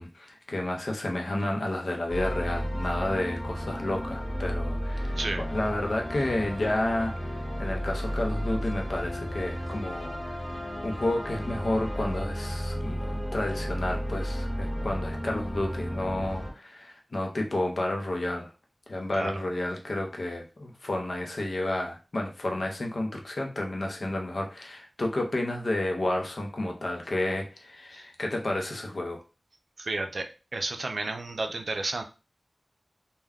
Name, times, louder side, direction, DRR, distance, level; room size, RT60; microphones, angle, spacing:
voice 1, 0.0-10.4 10.8-18.5 18.9-29.2, left 1 dB, 75° left, 2 dB, 0.6 m, -31 dB
sound 1, 2.1-16.5, equal, 25° left, 0.9 m, -33 dB
voice 2, 29.8-32.0, right 2 dB, 80° right, 5 dB, 0.4 m, -32 dB
2.2 x 2.2 x 3.4 m, 0.31 s
wide cardioid pair, 70°, 0 cm